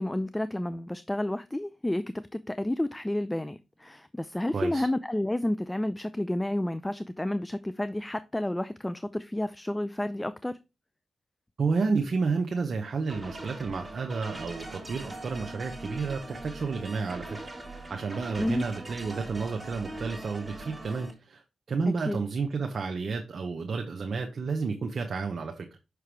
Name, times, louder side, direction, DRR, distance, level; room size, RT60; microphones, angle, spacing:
voice 1, 0.0-10.6 18.4-18.6 22.1-22.2, left 1 dB, 15° left, 0.4 m, -30 dB
voice 2, 4.5-4.9 11.6-17.4 17.9-21.4 21.7-25.7, right 4 dB, 60° right, 0.7 m, -31 dB
sound 1, 13.1-21.1, right 2 dB, 20° right, 1.8 m, -41 dB
5.9 x 4.7 x 3.4 m
supercardioid pair, 50°, 0 cm